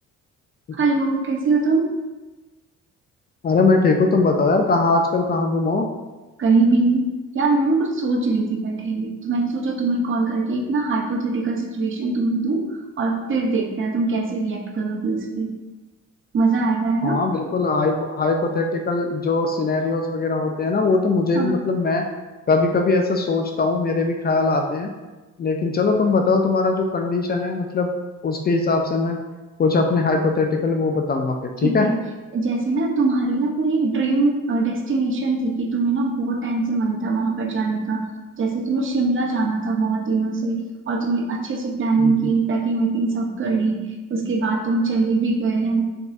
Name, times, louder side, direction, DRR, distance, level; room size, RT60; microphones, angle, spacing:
voice 1, 0.8-2.0 6.4-7.1 7.3-15.5 16.3-17.2 21.3-21.6 31.6-32.0 32.3-38.1 38.4-45.8, right 3 dB, 40° right, 1 dB, 0.7 m, -22 dB
voice 2, 3.4-5.9 17.0-22.1 22.5-24.9 25.4-27.9 28.2-29.2 29.6-31.9 42.0-42.3, left 3 dB, 35° left, 3 dB, 0.4 m, -21 dB
4.0 x 3.5 x 2.6 m, 1.2 s
cardioid pair, 90°, 30 cm